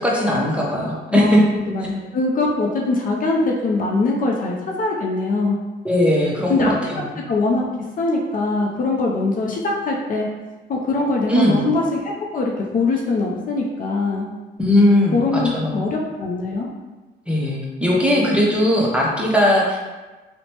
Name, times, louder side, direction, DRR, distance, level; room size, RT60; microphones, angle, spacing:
voice 1, 0.0-1.4 5.8-6.6 6.9-7.2 11.3-11.6 14.6-15.8 17.3-19.8, left 1 dB, 5° right, -4 dB, 0.6 m, -19 dB
voice 2, 1.1-5.6 6.5-7.6 8.0-10.3 10.7-14.3 15.1-16.7, left 3 dB, 45° left, -1 dB, 0.4 m, -22 dB
2.9 x 2.1 x 2.8 m, 1.2 s
cardioid pair, 90°, 20 cm